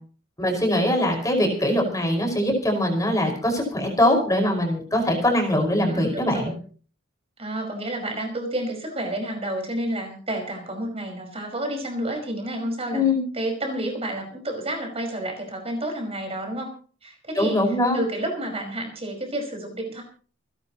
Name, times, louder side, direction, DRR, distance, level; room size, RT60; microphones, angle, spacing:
voice 1, 0.4-6.5 12.9-13.2 17.4-18.0, left 1 dB, 20° left, 2 dB, 5.3 m, -22 dB
voice 2, 5.8-6.6 7.4-13.0 13.3-16.7 17.0-17.6 17.9-20.0, right 1 dB, 30° right, 3 dB, 5.3 m, -30 dB
28.5 x 11.5 x 3.0 m, 0.42 s
head